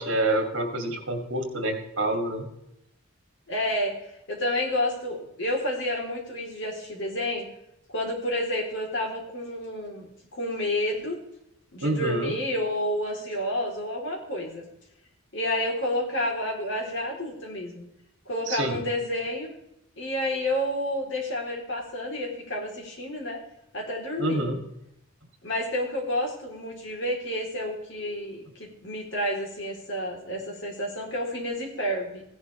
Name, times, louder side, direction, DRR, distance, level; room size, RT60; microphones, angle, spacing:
voice 1, 0.0-2.5 11.8-12.3 18.5-18.8 24.2-24.6, right 1 dB, 60° right, 3 dB, 2.8 m, -27 dB
voice 2, 3.5-3.9 4.3-7.5 7.9-11.2 11.7-14.7 15.3-17.8 18.3-19.5 20.0-23.4 23.7-24.4 25.4-32.2, left 1 dB, 60° left, -1 dB, 3.6 m, -30 dB
16.5 x 11.0 x 3.4 m, 0.81 s
head